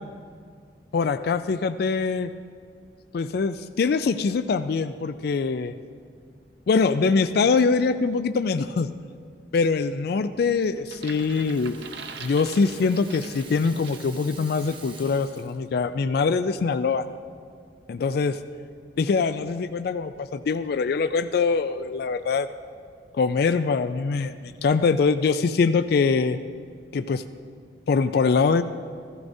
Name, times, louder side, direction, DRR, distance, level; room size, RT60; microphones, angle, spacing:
voice 1, 0.9-2.3 3.1-5.7 6.7-8.9 9.5-11.8 12.2-17.0 17.9-18.4 19.0-22.5 23.1-26.4 26.9-27.2 27.9-28.6, left 4 dB, 60° left, 11 dB, 0.3 m, -23 dB
Rattle (instrument), 10.6-15.7, right 4 dB, 30° right, 1.1 m, -48 dB
sound 1, 10.8-14.2 14.6-14.9, right 5 dB, 65° right, 0.7 m, -42 dB
15.0 x 15.0 x 2.7 m, 2.2 s
head